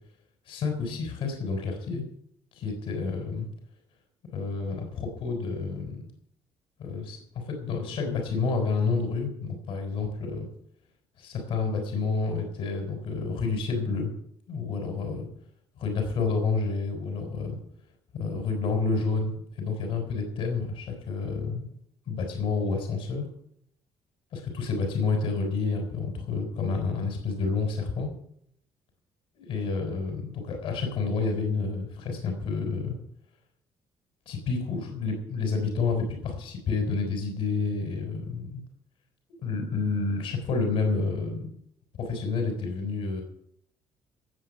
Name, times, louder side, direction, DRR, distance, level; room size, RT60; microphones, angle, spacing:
voice 1, 0.5-2.0 2.5-3.5 4.3-6.0 6.8-10.5 11.2-14.1 14.5-15.3 15.8-17.6 18.1-21.7 22.1-23.2 24.3-28.1 29.3-33.0 34.3-38.6 39.4-41.5 42.0-43.2, left 4 dB, 65° left, 4 dB, 3.9 m, -29 dB
17.0 x 7.9 x 6.4 m, 0.70 s
cardioid pair, 165°, 10 cm